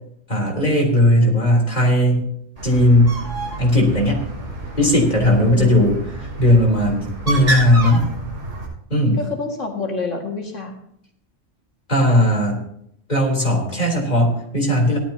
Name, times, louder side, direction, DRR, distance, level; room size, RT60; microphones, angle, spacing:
voice 1, 0.3-2.2 2.6-3.2 3.6-4.2 4.8-8.1 8.9-9.2 11.9-12.6 13.1-15.0, left 1 dB, 35° left, -1 dB, 3.7 m, -17 dB
Bird, 2.6-8.7, right 2 dB, 50° right, 5.8 m, -29 dB
voice 2, 5.3-5.9 9.1-10.7, left 3 dB, 80° left, 0 dB, 2.4 m, -27 dB
17.5 x 12.0 x 2.8 m, 0.71 s
omnidirectional pair, 1.3 m